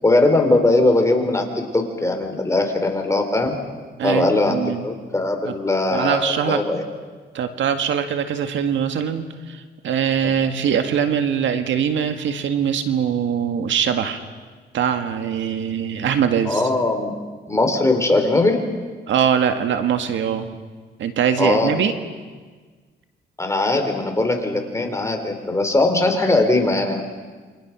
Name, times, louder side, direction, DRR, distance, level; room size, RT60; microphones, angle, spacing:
voice 1, 0.0-3.5 4.0-4.6 4.8-6.8 10.2-10.3 16.4-17.1 17.5-18.6 21.4-21.7 23.4-27.0, left 2 dB, 15° left, 4 dB, 4.4 m, -20 dB
voice 2, 4.0-4.8 5.9-6.6 7.3-14.2 14.7-16.6 19.1-20.5 21.0-21.9, right 8 dB, 70° right, 7 dB, 1.9 m, -22 dB
28.5 x 25.5 x 6.2 m, 1.4 s
cardioid pair, 90°, 20 cm